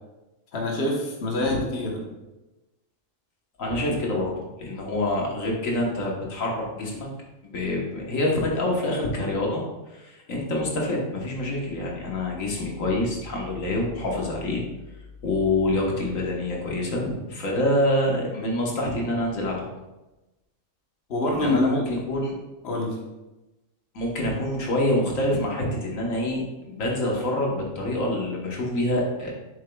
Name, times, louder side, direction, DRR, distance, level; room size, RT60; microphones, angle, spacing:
voice 1, 0.5-2.0 21.1-21.8 22.6-23.0, left 2 dB, 55° left, -1 dB, 1.3 m, -25 dB
voice 2, 3.6-4.3 4.6-7.1 7.5-14.6 15.2-19.7 21.3-22.4 23.9-29.3, left 1 dB, 80° left, -1 dB, 1.6 m, -26 dB
7.4 x 6.8 x 2.3 m, 1.0 s
omnidirectional pair, 1.4 m